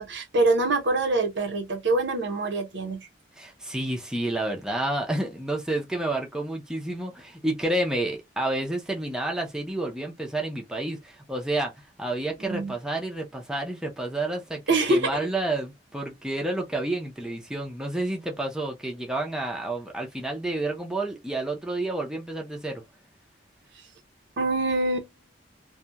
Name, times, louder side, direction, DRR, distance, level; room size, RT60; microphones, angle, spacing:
voice 1, 0.0-3.1 12.4-12.7 14.7-15.2 24.4-25.1, right 2 dB, 65° right, 0.7 m, -25 dB
voice 2, 3.4-11.7 12.0-14.6 14.9-22.8, right 2 dB, 5° right, 0.5 m, -30 dB
2.8 x 2.2 x 2.2 m
head